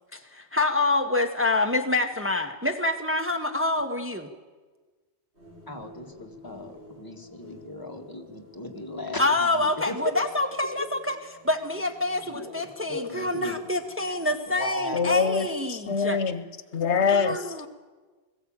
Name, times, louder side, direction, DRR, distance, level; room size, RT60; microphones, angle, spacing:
voice 1, 0.1-4.3 9.2-11.2 11.4-16.2 17.1-17.7, left 2 dB, 10° right, 5 dB, 1.0 m, -26 dB
sound 1, 5.3-14.3, right 1 dB, 80° right, 7.4 m, -52 dB
voice 2, 5.7-10.0 10.8-10.9 12.2-13.6 14.5-15.2, left 2 dB, 20° left, 2 dB, 1.8 m, -37 dB
voice 3, 14.9-16.4 16.7-17.7, left 6 dB, 80° left, 14 dB, 1.2 m, -25 dB
21.5 x 15.0 x 8.7 m, 1.4 s
omnidirectional pair, 1.1 m